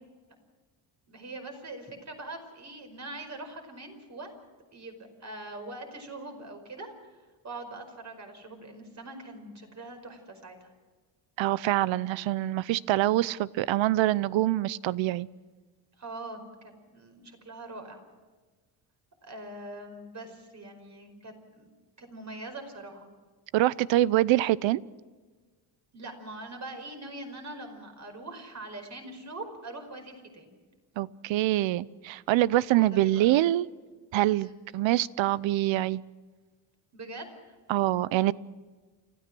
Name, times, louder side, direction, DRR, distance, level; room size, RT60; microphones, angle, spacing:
voice 1, 1.1-4.3 4.7-6.9 7.4-10.7 16.0-18.0 19.2-21.7 22.0-23.1 25.9-30.5 32.7-33.3 34.2-34.6 36.9-37.5, right 2 dB, 35° right, 5.1 m, -42 dB
voice 2, 11.4-15.3 23.5-24.8 31.0-33.7 34.1-36.0 37.7-38.3, right 15 dB, 75° right, 0.7 m, -25 dB
29.5 x 14.5 x 6.1 m
cardioid pair, 110°, 46 cm